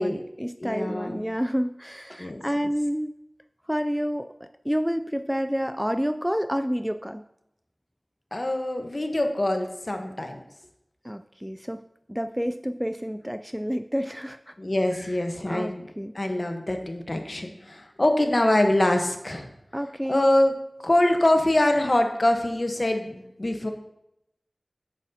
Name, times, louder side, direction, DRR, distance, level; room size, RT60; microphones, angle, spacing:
voice 1, 0.0-3.1 3.7-4.3 4.6-7.2 11.0-11.8 12.1-14.5 14.9-15.2 15.4-16.1 19.7-20.3, equal, 5° right, 9 dB, 0.3 m, -29 dB
voice 2, 0.6-1.2 2.2-2.4 8.3-10.4 14.6-15.9 16.1-19.5 20.1-20.5 20.8-23.7, left 1 dB, 50° left, 4 dB, 1.1 m, -24 dB
9.1 x 7.9 x 2.8 m, 0.81 s
wide cardioid pair, 50°, 0 cm